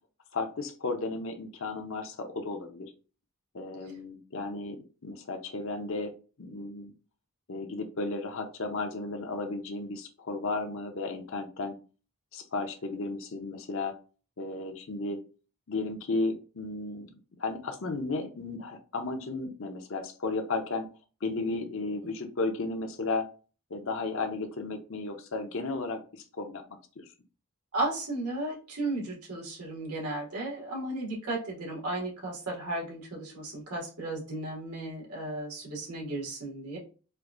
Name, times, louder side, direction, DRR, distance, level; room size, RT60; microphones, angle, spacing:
voice 1, 0.3-2.9 3.5-6.9 7.5-11.8 12.3-14.0 14.4-15.2 15.7-20.9 21.2-23.3 23.7-26.6 27.0-27.1, left 3 dB, 60° left, 5 dB, 0.7 m, -34 dB
voice 2, 27.7-36.8, right 2 dB, 90° right, -3 dB, 2.0 m, -34 dB
4.5 x 2.6 x 2.5 m, 0.35 s
head